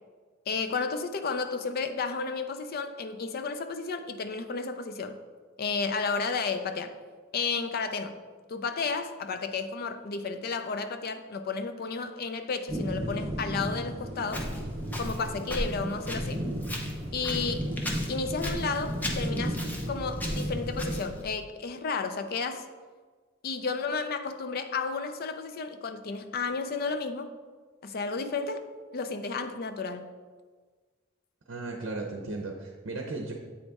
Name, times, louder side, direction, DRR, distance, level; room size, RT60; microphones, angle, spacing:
voice 1, 0.5-5.2 5.6-6.9 7.3-8.2 8.5-14.5 15.0-16.4 17.1-17.7 18.1-22.6 23.4-27.3 27.8-28.7 28.9-30.1, left 4 dB, 50° left, 9 dB, 0.5 m, -32 dB
sound 1, 12.7-21.0, equal, 35° right, 0.9 m, -34 dB
Walk footsteps, 14.3-21.3, equal, 10° left, 0.7 m, -38 dB
voice 2, 31.5-33.3, right 2 dB, 65° right, 1 dB, 0.7 m, -35 dB
8.3 x 4.0 x 3.5 m, 1.4 s
head